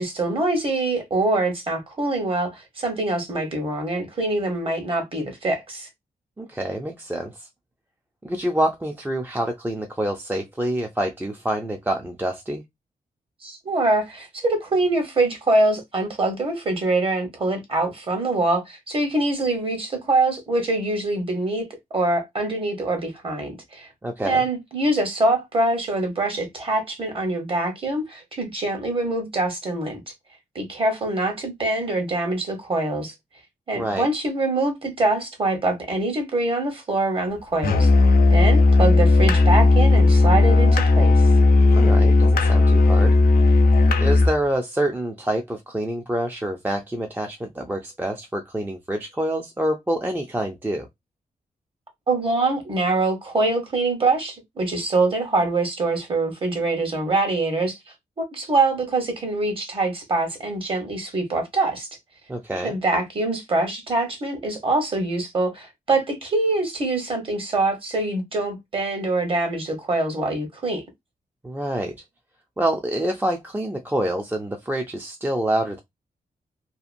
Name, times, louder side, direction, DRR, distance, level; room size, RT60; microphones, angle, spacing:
voice 1, 0.0-5.9 13.4-21.7 21.9-23.9 24.2-30.0 30.5-33.1 33.7-37.9 38.3-41.3 52.1-57.8 58.3-61.9 62.6-70.8, right 2 dB, 35° right, 1.1 m, -24 dB
voice 2, 6.4-7.5 8.2-12.6 24.0-24.4 33.8-34.1 41.7-43.2 44.0-50.9 62.3-62.7 71.4-72.0 72.6-75.8, right 1 dB, 10° right, 0.4 m, -26 dB
Musical instrument, 37.6-44.4, left 3 dB, 75° left, 0.5 m, -15 dB
2.8 x 2.4 x 2.5 m
wide cardioid pair, 120°, 15 cm